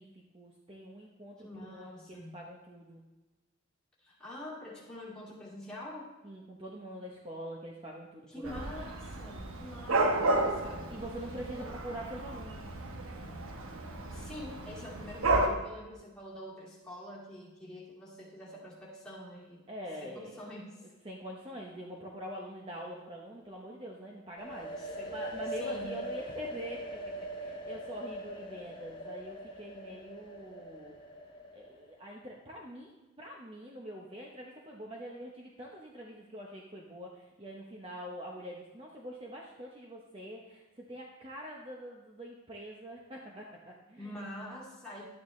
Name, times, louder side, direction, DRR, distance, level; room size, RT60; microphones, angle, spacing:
voice 1, 0.0-3.0 6.2-8.8 10.9-12.7 19.7-20.5 21.0-27.0 27.3-31.0 31.5-44.1, equal, 25° right, -1 dB, 0.8 m, -44 dB
voice 2, 1.4-2.4 4.0-6.1 8.3-10.9 11.6-11.7 14.1-19.7 20.0-20.9 24.8-25.1 25.5-26.0 44.0-45.0, left 1 dB, 5° left, -6 dB, 2.4 m, -46 dB
Dog / Cat, 8.4-15.5, right 2 dB, 70° right, 1.0 m, -32 dB
sound 1, 24.4-32.0, equal, 20° left, 1.2 m, -42 dB
11.5 x 8.8 x 3.2 m, 1.1 s
head